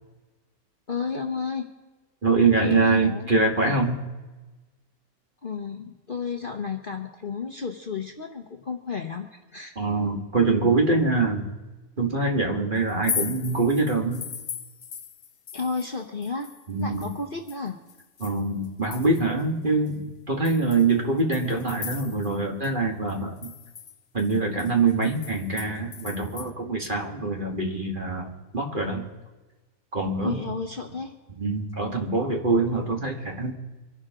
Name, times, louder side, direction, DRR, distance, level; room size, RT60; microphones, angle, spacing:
voice 1, 0.9-1.7 2.6-3.3 5.4-9.7 15.5-16.5 16.8-17.8 30.2-31.1, left 5 dB, 40° left, 3 dB, 1.1 m, -32 dB
voice 2, 2.2-4.1 9.8-11.5 12.0-14.2 16.7-17.1 18.2-23.5 24.1-29.1 29.9-30.4 31.4-33.5, right 3 dB, 35° right, 1 dB, 2.1 m, -24 dB
sound 1, 12.9-16.0 16.2-19.4 19.9-20.0 20.4-22.4 22.6-22.7 23.1-26.5, left 7 dB, 65° left, 0.4 m, -37 dB
25.5 x 11.5 x 3.8 m, 1.2 s
omnidirectional pair, 1.6 m